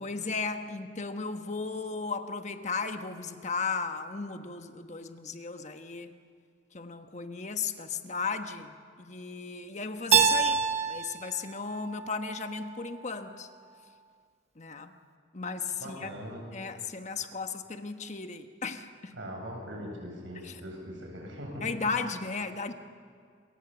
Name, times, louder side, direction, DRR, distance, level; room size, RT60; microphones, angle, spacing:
voice 1, 0.0-6.2 6.7-13.5 14.6-14.9 15.3-16.1 16.5-19.1 20.4-20.6 21.6-22.7, left 4 dB, 40° left, 7 dB, 1.2 m, -35 dB
Keyboard (musical), 10.1-12.9, right 6 dB, 35° right, 1.2 m, -27 dB
voice 2, 15.8-16.4 19.1-21.6, equal, 85° right, 1 dB, 7.7 m, -41 dB
28.0 x 23.5 x 7.1 m, 2.2 s
head